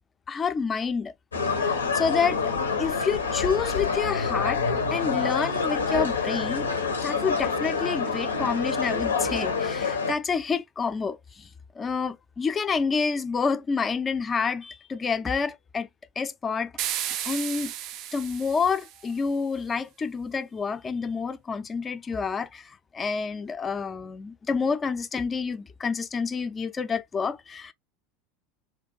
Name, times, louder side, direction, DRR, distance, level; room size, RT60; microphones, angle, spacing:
voice 1, 0.3-1.1 1.6-2.4 2.8-4.6 4.9-6.7 7.0-11.5 11.8-15.9 16.2-17.7 18.1-27.7, left 5 dB, 25° left, 0.4 m, -28 dB
sound 1, 1.3-10.1, left 5 dB, 75° left, 0.6 m, -27 dB
sound 2, 16.8-19.2, right 11 dB, 45° right, 0.3 m, -33 dB
2.4 x 2.2 x 3.7 m
figure-of-eight pair, 75°, 0 cm